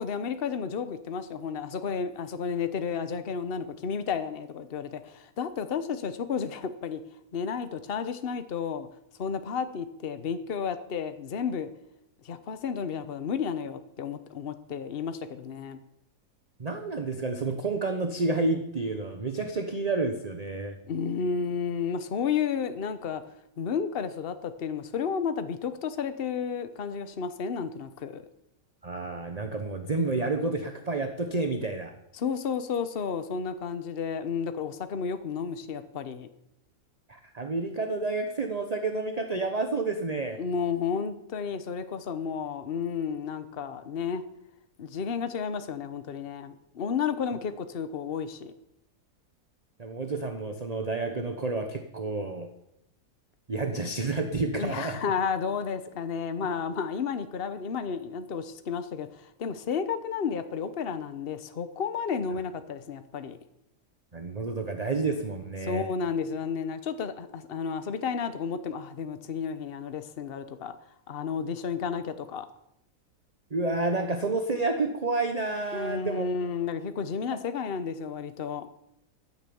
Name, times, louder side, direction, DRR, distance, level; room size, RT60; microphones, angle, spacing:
voice 1, 0.0-7.0 7.3-8.9 9.2-11.7 12.2-15.8 20.9-23.2 23.6-28.2 32.1-36.3 40.4-44.2 44.8-48.5 54.6-63.4 65.6-70.7 71.1-72.5 75.7-78.7, left 6 dB, 40° left, 10 dB, 1.1 m, -32 dB
voice 2, 16.6-20.8 28.8-31.9 37.1-40.4 49.8-52.5 53.5-55.0 64.1-65.9 73.5-76.3, right 3 dB, 30° right, 6 dB, 1.0 m, -30 dB
15.5 x 9.6 x 7.1 m, 0.81 s
omnidirectional pair, 1.8 m